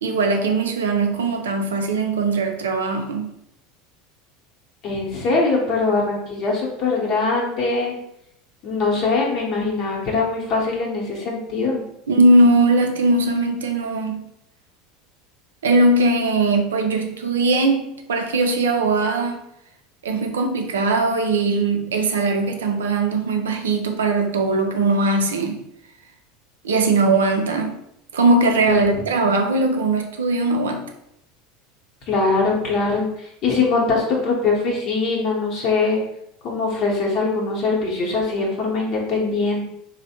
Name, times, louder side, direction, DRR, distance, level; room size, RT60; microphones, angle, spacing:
voice 1, 0.0-3.3 12.1-14.3 15.6-19.5 20.0-25.6 26.6-27.8 28.1-30.9, right 2 dB, 80° right, 0.4 m, -20 dB
voice 2, 4.8-7.9 8.6-11.8 28.7-28.8 32.1-36.0 36.4-39.6, left 3 dB, 50° left, 0.9 m, -22 dB
3.1 x 2.0 x 2.8 m
hypercardioid pair, 80°, 0 cm